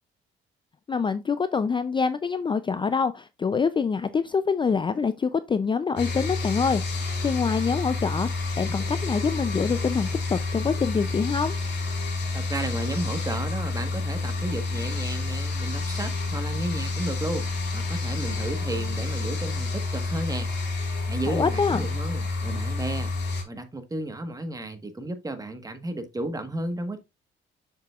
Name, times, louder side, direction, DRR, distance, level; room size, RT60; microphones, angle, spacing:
voice 1, 0.9-11.6 21.3-21.8, left 5 dB, 25° left, 0.4 m, -26 dB
sound 1, 6.0-23.4, left 3 dB, 60° left, 3.8 m, -29 dB
voice 2, 12.3-17.5 17.7-20.5 21.1-23.1 23.5-27.0, right 1 dB, 20° right, 1.4 m, -33 dB
6.7 x 6.6 x 2.4 m
cardioid pair, 90°, 20 cm